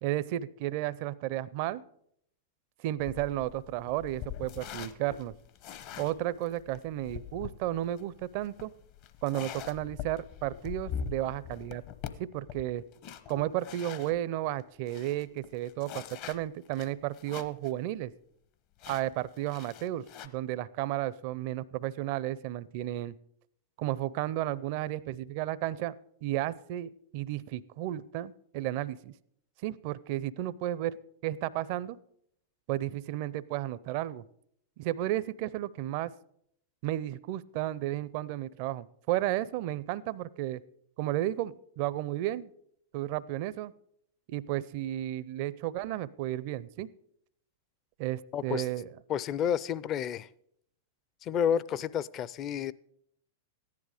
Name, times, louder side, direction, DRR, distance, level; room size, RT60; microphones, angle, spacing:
voice 1, 0.0-1.8 2.8-5.3 6.0-8.7 9.2-11.8 12.2-12.8 13.3-18.1 18.9-23.1 23.8-25.9 26.2-29.1 29.6-31.0 31.2-32.0 32.7-34.2 34.8-36.1 36.8-40.6 41.0-42.5 42.9-43.7 44.3-46.9 48.0-48.9, right 14 dB, 55° right, 0.5 m, -33 dB
sound 1, 3.0-14.2 14.6-14.7 14.9-17.7 18.0-18.1 18.8-20.3, left 8 dB, 50° left, 1.0 m, -43 dB
voice 2, 48.3-48.7 49.1-50.3 51.2-52.7, left 8 dB, 35° left, 0.5 m, -30 dB
14.5 x 10.5 x 4.9 m
hypercardioid pair, 105°, 0 cm